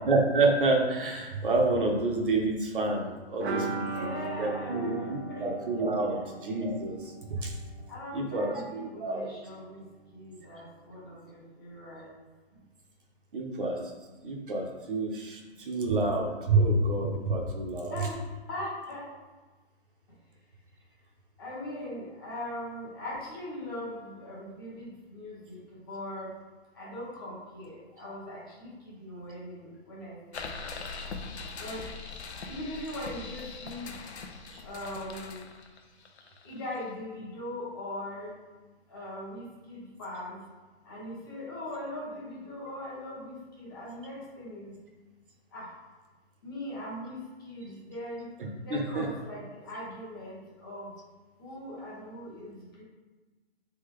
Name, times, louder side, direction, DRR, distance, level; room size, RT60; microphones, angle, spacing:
voice 1, 0.1-4.1 4.4-7.5 8.1-9.3 13.3-13.8 14.2-17.9 34.5-34.6 48.4-49.1, right 2 dB, 50° right, 0 dB, 0.9 m, -28 dB
sound 1, 3.4-9.0 9.3-9.4 9.6-9.7, right 3 dB, 85° right, 1.0 m, -39 dB
voice 2, 3.7-5.5 6.1-6.2 7.9-9.8 10.1-12.1 12.5-12.6 17.9-19.1 21.4-25.6 25.9-26.3 26.7-30.7 31.6-31.8 32.4-33.9 34.6-35.4 36.4-38.3 38.9-40.4 40.8-44.7 45.5-45.7 46.4-48.3 48.6-50.9 51.4-52.8, left 1 dB, 20° left, -7 dB, 1.0 m, -40 dB
sound 2, 30.3-36.9, left 4 dB, 85° left, 0.8 m, -41 dB
4.2 x 3.4 x 3.7 m, 1.3 s
hypercardioid pair, 175°, 32 cm